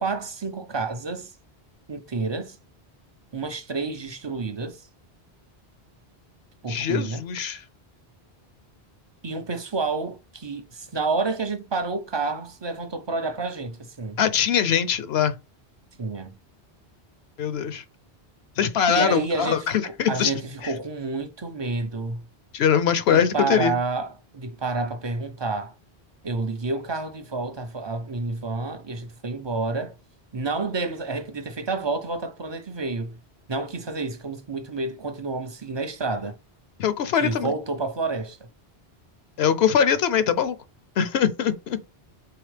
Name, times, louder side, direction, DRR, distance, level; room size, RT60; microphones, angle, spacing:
voice 1, 0.0-1.3 1.9-2.6 3.3-4.8 6.6-7.2 9.2-14.2 16.0-16.4 18.9-22.2 23.1-25.7 26.2-29.9 30.3-33.2 33.5-36.4 37.2-38.4, right 3 dB, 40° right, 0.4 m, -29 dB
voice 2, 6.7-7.6 14.2-15.3 17.4-17.8 18.6-20.3 20.6-20.7 22.5-23.7 36.8-37.5 39.4-40.6 41.0-41.8, left 8 dB, 75° left, 0.8 m, -22 dB
4.7 x 3.4 x 3.2 m
omnidirectional pair, 1.1 m